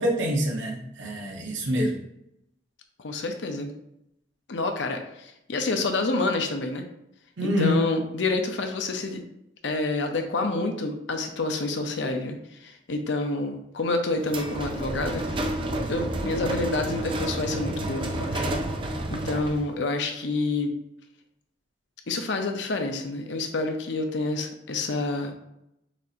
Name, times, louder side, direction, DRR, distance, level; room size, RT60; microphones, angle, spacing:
voice 1, 0.0-2.0 7.4-7.8, equal, 85° right, 0 dB, 0.9 m, -26 dB
voice 2, 3.0-3.7 4.5-6.9 7.6-9.2 9.6-15.3 15.9-18.6 19.1-20.8 22.1-25.3, left 2 dB, 75° left, 4 dB, 0.6 m, -28 dB
sound 1, 14.2-19.7, right 1 dB, 25° right, 0.4 m, -30 dB
6.1 x 2.8 x 2.5 m, 0.81 s
head